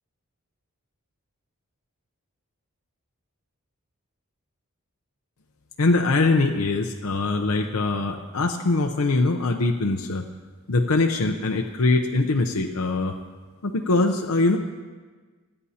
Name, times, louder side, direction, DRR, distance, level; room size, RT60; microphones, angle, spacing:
voice 1, 5.8-10.2 10.7-13.1 13.6-14.6, left 3 dB, 75° left, 3 dB, 0.7 m, -22 dB
27.5 x 9.8 x 2.8 m, 1.4 s
head